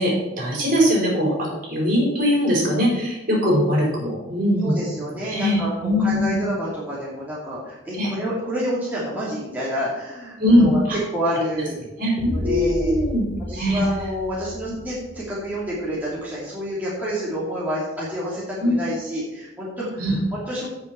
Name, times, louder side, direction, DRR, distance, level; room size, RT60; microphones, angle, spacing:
voice 1, 0.0-4.8 5.2-6.4 7.9-8.1 10.4-11.0 12.0-13.3 13.5-13.8 18.6-18.8 20.0-20.1, equal, 45° right, -3 dB, 4.8 m, -21 dB
voice 2, 4.6-10.8 11.1-11.8 12.3-13.0 13.5-20.7, equal, 10° right, -8 dB, 2.7 m, -28 dB
sound 1, 12.2-16.2, left 1 dB, 25° right, 2.5 m, -33 dB
17.0 x 5.8 x 4.6 m, 0.98 s
head